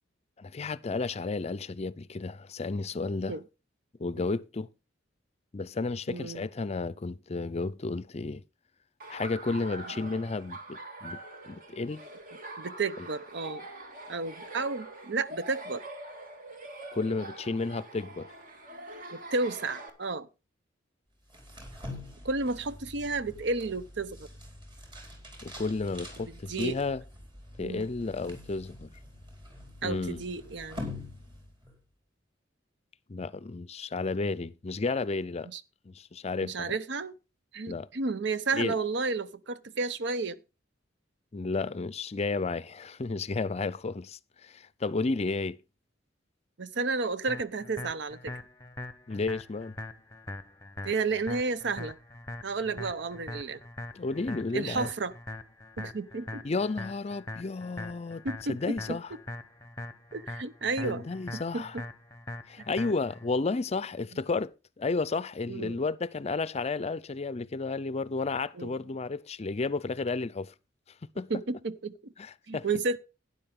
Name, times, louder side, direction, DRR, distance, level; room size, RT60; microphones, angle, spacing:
voice 1, 0.4-3.4 4.0-4.7 5.5-8.4 9.1-12.1 16.9-18.3 25.4-27.0 27.6-28.9 29.8-30.2 33.1-35.5 35.9-36.8 37.7-37.9 38.5-38.7 41.3-45.6 49.1-49.7 53.9-54.9 56.4-58.2 58.5-59.1 60.8-61.8 62.5-64.5 64.8-70.5 71.2-71.3 72.2-72.6, left 3 dB, 35° left, 0.5 m, -32 dB
voice 2, 6.1-6.5 10.0-10.1 12.6-13.7 14.1-15.8 19.3-20.3 22.2-24.3 26.2-26.8 27.6-27.9 29.8-30.9 35.5-35.6 36.4-37.1 37.5-40.4 46.6-48.4 50.8-52.0 52.4-53.6 54.5-55.1 55.8-56.4 58.2-59.0 60.1-61.1 61.5-61.8 62.6-62.7 65.5-65.8 68.5-68.7 71.3-72.1 72.5-73.0, right 3 dB, 65° right, 0.8 m, -32 dB
Laughter, 9.0-19.9, right 2 dB, 50° right, 2.0 m, -44 dB
sound 1, 21.2-31.8, left 1 dB, 25° right, 4.4 m, -45 dB
sound 2, 47.3-63.3, left 2 dB, 15° left, 0.9 m, -42 dB
12.0 x 9.9 x 3.7 m
head